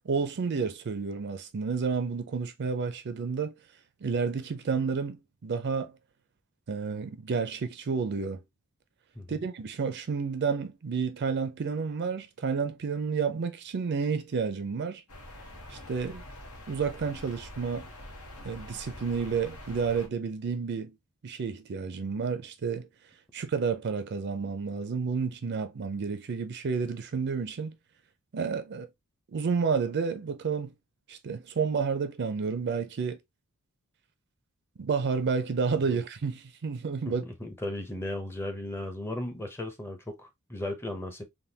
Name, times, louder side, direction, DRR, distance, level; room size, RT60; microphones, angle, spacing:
voice 1, 0.1-3.5 4.0-5.9 6.7-8.4 9.3-15.0 15.7-16.2 16.7-17.9 18.4-20.9 21.2-22.9 23.3-27.7 28.3-28.9 29.3-30.7 31.1-33.2 34.8-37.2, right 5 dB, 50° right, 0.4 m, -30 dB
sound 1, 15.1-20.1, left 1 dB, 85° left, 1.0 m, -45 dB
voice 2, 37.0-41.2, left 1 dB, 10° left, 0.6 m, -36 dB
3.4 x 2.2 x 2.7 m
head